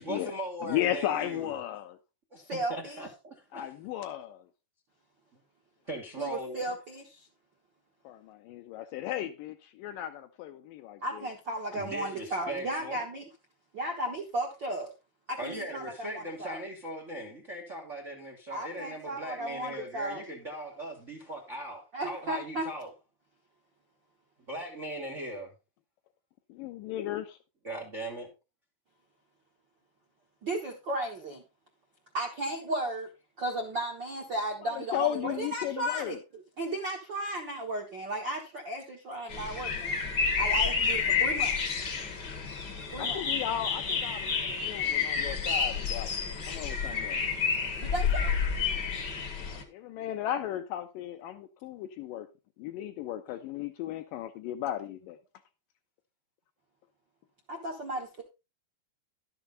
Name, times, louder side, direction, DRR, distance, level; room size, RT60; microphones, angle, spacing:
voice 1, 0.0-1.5 2.3-3.7 5.8-6.7 11.7-13.0 15.4-22.9 24.5-25.5 27.6-28.3, right 1 dB, 85° right, 0.6 m, -39 dB
voice 2, 0.6-2.0 3.5-4.5 8.0-11.3 26.5-27.4 34.6-36.2 43.0-46.1 46.5-47.2 49.5-52.3 52.6-55.2, left 12 dB, 80° left, 2.1 m, -35 dB
voice 3, 2.4-3.0 6.2-7.3 11.0-13.2 13.7-14.9 15.3-16.6 18.5-20.2 21.9-22.7 30.4-31.4 32.1-33.1 33.4-36.2 36.6-40.0 40.4-41.7 42.9-43.2 47.8-48.4 57.5-58.2, right 1 dB, 65° right, 1.1 m, -35 dB
sound 1, 39.3-49.6, left 5 dB, 60° left, 1.1 m, -30 dB
12.0 x 7.0 x 3.9 m
omnidirectional pair, 4.4 m